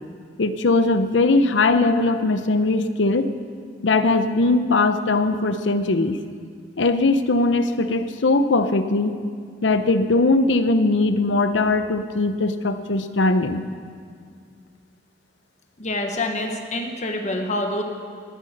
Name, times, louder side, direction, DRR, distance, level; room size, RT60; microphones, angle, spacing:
voice 1, 0.4-3.3 3.8-6.2 6.8-9.2 9.6-13.6, left 2 dB, 80° left, 11 dB, 0.7 m, -20 dB
voice 2, 15.8-17.8, left 1 dB, 40° left, 4 dB, 1.4 m, -26 dB
18.5 x 8.1 x 6.6 m, 2.1 s
head